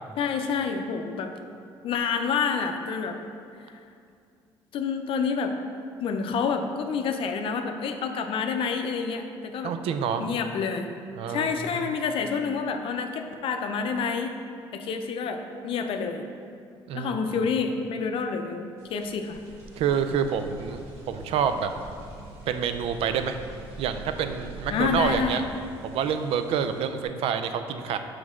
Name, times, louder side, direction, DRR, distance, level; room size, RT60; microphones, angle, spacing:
voice 1, 0.2-1.3 1.8-3.2 4.7-5.5 6.0-9.7 10.2-10.9 11.3-14.3 14.7-16.3 16.9-19.4 24.7-25.4, left 5 dB, 65° left, 6 dB, 0.5 m, -28 dB
voice 2, 9.6-10.3 11.2-11.8 16.9-17.2 19.8-21.7 22.5-23.4 23.8-25.4 25.8-28.0, right 7 dB, 75° right, 8 dB, 0.4 m, -27 dB
sound 1, 18.8-27.0, right 1 dB, 90° right, 1.3 m, -43 dB
6.2 x 4.6 x 3.7 m, 2.4 s
cardioid pair, 95°, 10 cm